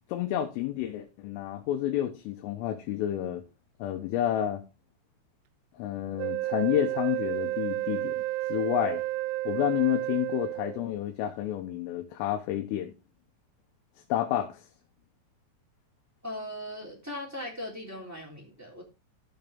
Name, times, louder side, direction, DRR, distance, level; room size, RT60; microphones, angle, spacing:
voice 1, 0.1-3.4 3.8-4.6 5.8-8.2 8.5-9.0 9.5-12.9 14.1-14.6, left 12 dB, 85° left, 4 dB, 3.6 m, -30 dB
Wind instrument woodwind instrument, 6.2-10.9, right 16 dB, 80° right, 3.1 m, -31 dB
voice 2, 16.2-18.8, left 1 dB, 5° right, -2 dB, 2.0 m, -39 dB
14.5 x 6.4 x 3.5 m, 0.28 s
omnidirectional pair, 5.8 m